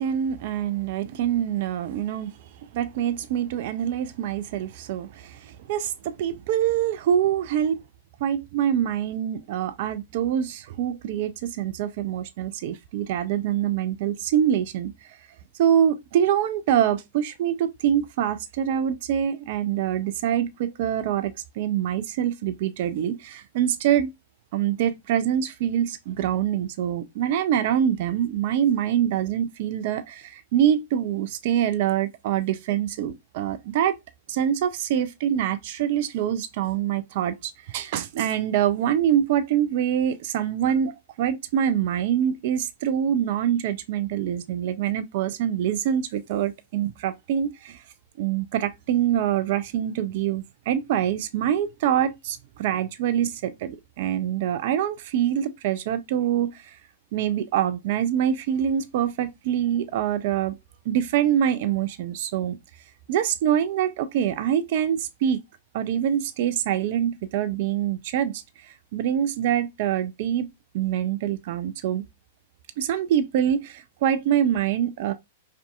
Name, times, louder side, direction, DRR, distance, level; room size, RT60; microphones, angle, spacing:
voice 1, 0.0-2.3 2.7-7.8 8.2-14.9 15.6-24.1 24.5-34.0 34.3-47.8 48.2-56.8 57.1-60.6 60.9-62.6 63.1-65.4 65.7-70.5 70.7-72.0 72.8-75.1, right 10 dB, 55° right, 0.3 m, -25 dB
2.6 x 2.3 x 2.3 m
hypercardioid pair, 105°, 0 cm